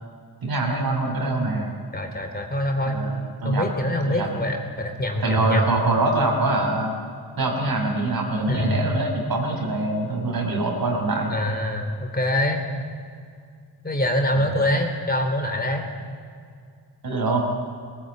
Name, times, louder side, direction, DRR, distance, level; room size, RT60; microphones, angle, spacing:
voice 1, 0.4-1.7 2.9-3.7 4.0-4.3 5.2-6.9 7.4-11.3 14.4-14.5 17.0-17.4, right 2 dB, 55° right, 1 dB, 5.6 m, -24 dB
voice 2, 1.9-3.0 3.4-5.6 8.5-8.8 11.3-12.6 13.8-15.9, left 1 dB, 20° left, 3 dB, 3.5 m, -24 dB
19.0 x 19.0 x 9.1 m, 2.2 s
cardioid pair, 80°, 42 cm